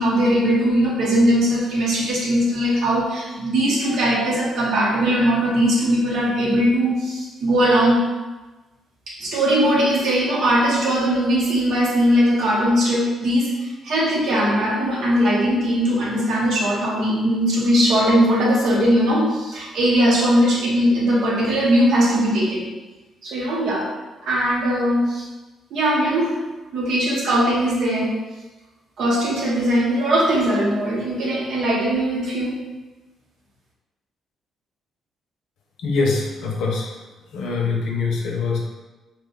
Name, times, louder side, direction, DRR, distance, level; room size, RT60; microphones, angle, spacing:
voice 1, 0.0-8.1 9.1-22.6 23.2-23.9 24.2-25.3 25.7-26.4 26.7-28.1 29.0-32.6, equal, 75° right, -4 dB, 0.9 m, -20 dB
voice 2, 35.8-37.0 37.3-38.7, left 4 dB, 80° left, -1 dB, 0.6 m, -23 dB
2.7 x 2.3 x 3.7 m, 1.2 s
cardioid pair, 90°, 0 cm